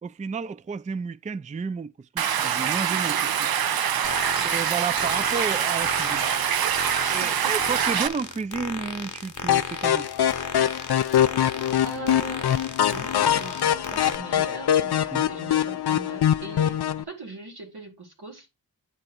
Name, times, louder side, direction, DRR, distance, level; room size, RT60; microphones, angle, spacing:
voice 1, 0.0-3.5 3.8-6.3 7.1-10.1 15.1-15.3, right 5 dB, 20° right, 0.4 m, -32 dB
Stream, 2.2-8.1, right 8 dB, 70° right, 0.5 m, -25 dB
sound 1, 4.0-14.2, left 4 dB, 50° left, 0.9 m, -36 dB
voice 2, 7.2-7.6 11.8-12.6 12.9-18.5, right 3 dB, 90° right, 2.0 m, -41 dB
sound 2, 9.5-17.0, left 10 dB, 85° left, 0.5 m, -23 dB
8.7 x 3.0 x 6.0 m
cardioid pair, 45°, 38 cm